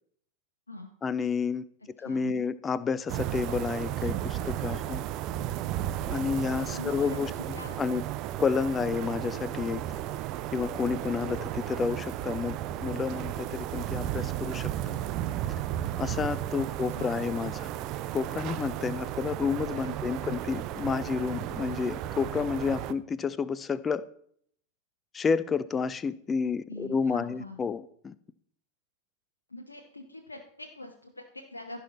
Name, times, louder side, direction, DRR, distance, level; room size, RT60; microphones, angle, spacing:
voice 1, 1.0-1.6 2.0-5.0 6.1-7.3 7.8-8.0 8.4-9.8 10.5-15.0 16.0-17.7 18.1-24.0 25.1-28.1, left 5 dB, 20° left, 16 dB, 0.6 m, -30 dB
voice 2, 2.0-2.4 6.5-7.8 16.9-17.3 19.8-20.0 20.6-20.7 26.7-27.6 29.5-31.8, left 1 dB, 80° left, 3 dB, 1.0 m, -43 dB
sound 1, 3.1-22.9, right 12 dB, 40° right, 0.5 m, -34 dB
15.0 x 5.4 x 4.3 m, 0.62 s
figure-of-eight pair, 90°, 0 cm